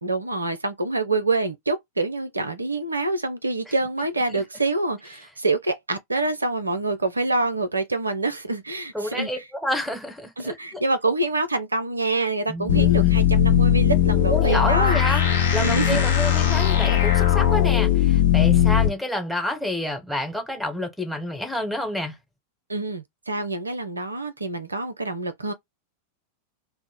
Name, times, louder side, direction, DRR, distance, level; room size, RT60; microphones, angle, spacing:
voice 1, 0.0-9.4 10.4-15.0 15.6-16.0 22.7-25.5, right 2 dB, 80° right, 0.4 m, -26 dB
voice 2, 8.9-10.8 12.5-13.2 14.3-15.2 15.5-22.2, left 1 dB, ahead, 1.0 m, -29 dB
sound 1, 12.7-18.9, left 10 dB, 65° left, 0.8 m, -19 dB
2.4 x 2.0 x 3.5 m
figure-of-eight pair, 90°, 0 cm